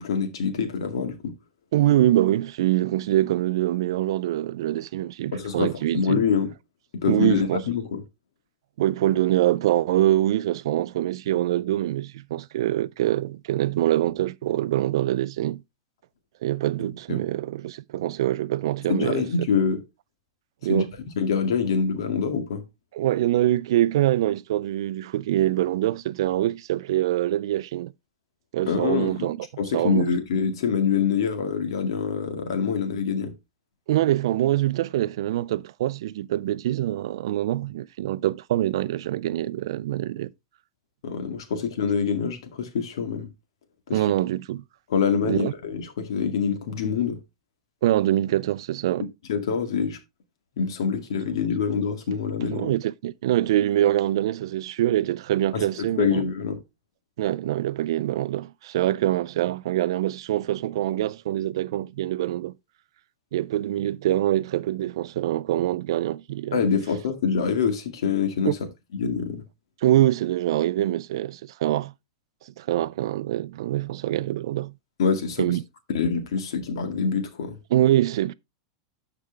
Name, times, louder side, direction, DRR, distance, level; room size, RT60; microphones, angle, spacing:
voice 1, 0.0-1.3 5.3-6.5 6.9-8.0 17.1-17.2 18.9-19.8 20.7-20.8 21.2-22.6 28.7-29.3 29.6-33.3 41.0-43.3 43.9-44.0 44.9-47.2 49.3-50.0 50.6-52.7 55.5-55.7 56.0-56.6 66.5-68.6 68.9-69.4 75.0-75.6 75.9-77.6, left 6 dB, 85° left, 1.9 m, -25 dB
voice 2, 1.7-6.3 7.1-7.6 8.8-15.6 16.4-19.3 20.6-20.9 22.9-27.9 28.5-29.5 29.7-30.1 33.9-40.3 43.9-44.6 45.2-45.5 47.8-49.1 52.5-56.2 57.2-62.5 63.3-66.6 68.4-68.5 69.8-71.9 72.6-74.7 75.4-75.6 77.7-78.3, right 13 dB, 75° right, 0.4 m, -24 dB
12.0 x 5.0 x 3.3 m
supercardioid pair, 135°, 3 cm